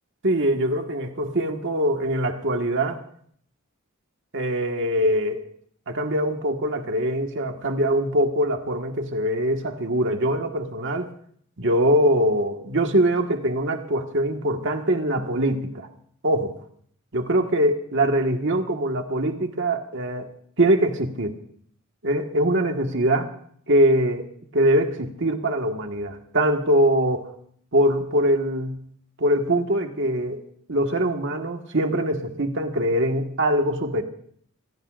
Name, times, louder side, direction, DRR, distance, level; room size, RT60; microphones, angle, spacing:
voice 1, 0.2-3.0 4.3-5.4 5.9-11.1 11.6-15.9 16.2-16.5 17.1-20.3 20.6-21.4 22.0-23.3 23.7-24.3 24.5-27.3 27.7-28.8 29.2-30.4 30.7-34.0, right 1 dB, 55° right, 4 dB, 1.6 m, -23 dB
26.5 x 17.0 x 2.5 m, 0.62 s
head